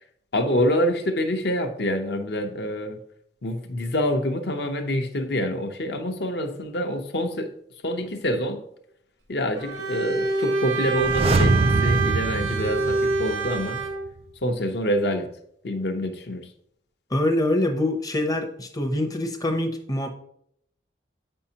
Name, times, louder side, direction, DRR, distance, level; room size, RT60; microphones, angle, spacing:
voice 1, 0.3-3.0 3.4-7.5 7.8-8.6 9.3-13.8 14.4-15.3 15.6-16.5, equal, 60° left, 0.7 m, -26 dB
Bowed string instrument, 9.6-14.1, right 3 dB, 85° right, 0.8 m, -26 dB
sound 1, 10.9-13.8 14.1-14.2, right 3 dB, 30° right, 0.4 m, -24 dB
voice 2, 17.1-20.1, left 1 dB, 20° left, 0.6 m, -24 dB
8.0 x 5.5 x 2.8 m
head